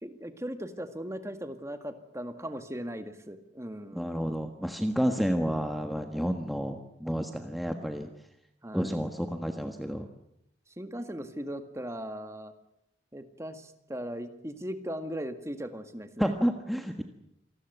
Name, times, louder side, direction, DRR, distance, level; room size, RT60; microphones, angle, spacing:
voice 1, 0.0-4.1 8.6-8.9 10.8-12.5 13.1-16.3, equal, 15° right, 8 dB, 1.9 m, -38 dB
voice 2, 3.9-8.1 8.7-10.1 16.2-17.0, equal, ahead, 5 dB, 1.4 m, -30 dB
27.5 x 20.0 x 8.1 m, 0.79 s
head